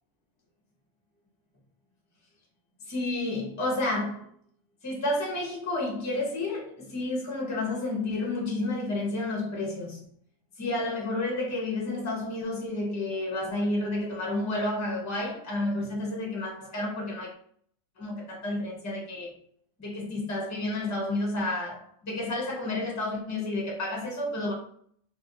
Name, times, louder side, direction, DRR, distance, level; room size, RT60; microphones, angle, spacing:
voice 1, 2.9-4.3 4.8-10.1 10.6-17.3 18.0-19.3 19.8-24.5, left 2 dB, 20° left, 0.5 m, -30 dB
2.6 x 2.5 x 3.8 m
omnidirectional pair, 1.7 m